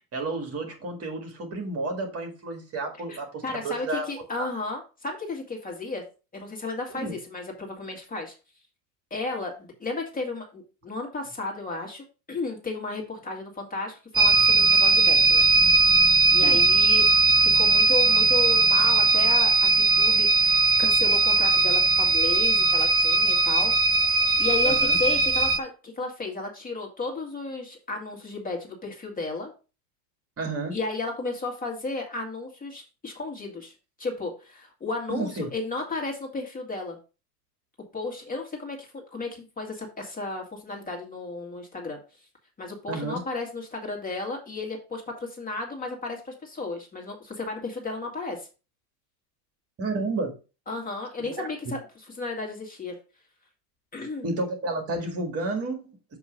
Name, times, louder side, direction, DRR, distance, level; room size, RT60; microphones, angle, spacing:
voice 1, 0.1-4.1 4.4-4.5 6.9-7.1 16.4-16.6 24.6-25.0 30.4-30.8 35.1-35.5 42.9-43.2 49.8-50.4 51.2-51.7 54.2-55.8, right 2 dB, 30° right, 4 dB, 1.8 m, -31 dB
voice 2, 3.4-6.0 6.3-8.3 9.1-15.5 16.3-17.1 17.4-23.7 24.4-29.5 30.7-33.7 34.0-37.0 37.9-42.0 42.6-48.5 50.7-51.8 52.2-53.0 53.9-54.3, left 3 dB, 20° left, 0 dB, 1.8 m, -33 dB
sound 1, 14.1-25.6, right 3 dB, 10° right, 0.4 m, -19 dB
7.2 x 3.1 x 5.0 m, 0.32 s
supercardioid pair, 115°, 46 cm